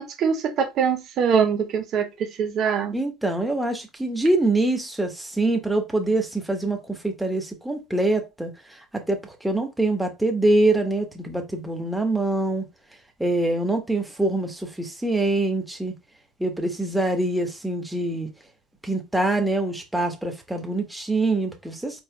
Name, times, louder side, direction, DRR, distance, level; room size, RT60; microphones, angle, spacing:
voice 1, 0.0-2.9, right 7 dB, 55° right, 0.8 m, -23 dB
voice 2, 2.9-12.6 13.2-15.9 16.4-18.3 18.8-22.0, right 2 dB, 5° right, 1.3 m, -24 dB
4.4 x 4.3 x 2.3 m
hypercardioid pair, 65°, 0 cm